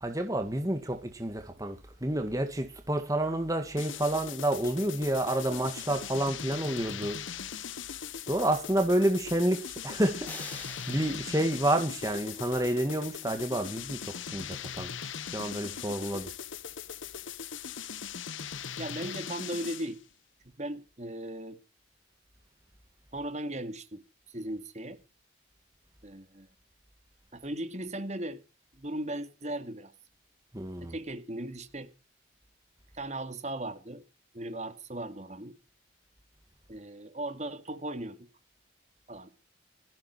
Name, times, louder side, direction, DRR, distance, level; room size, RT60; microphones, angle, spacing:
voice 1, 0.0-7.2 8.3-16.3 30.5-30.9, right 1 dB, 20° right, 2.1 m, -29 dB
sound 1, 3.8-20.0, left 8 dB, 85° left, 1.0 m, -40 dB
sound 2, 10.2-12.6, left 2 dB, 10° left, 2.0 m, -47 dB
voice 2, 18.8-20.0 20.6-21.6 23.1-24.0 24.3-25.0 26.0-26.5 27.3-28.4 28.7-29.9 30.8-31.9 32.9-34.0 34.3-35.6 36.7-38.3 39.1-39.3, right 1 dB, 35° right, 2.3 m, -37 dB
19.0 x 16.0 x 4.6 m
head